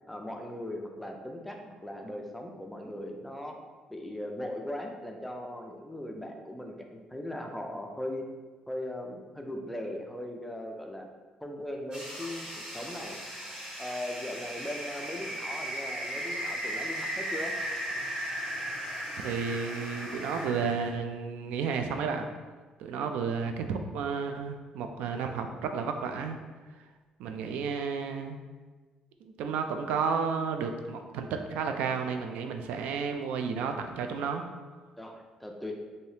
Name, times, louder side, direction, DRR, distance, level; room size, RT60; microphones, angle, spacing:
voice 1, 0.1-3.6 3.9-8.2 8.7-11.1 11.4-13.2 13.8-17.5 35.0-35.7, left 1 dB, 5° left, 2 dB, 0.3 m, -39 dB
sound 1, 11.9-20.9, right 1 dB, 40° right, 1.2 m, -36 dB
voice 2, 19.2-22.3 22.8-26.4 27.2-28.4 29.2-34.4, right 5 dB, 90° right, 6 dB, 0.3 m, -32 dB
3.3 x 2.7 x 2.7 m, 1.3 s
cardioid pair, 165°, 2 cm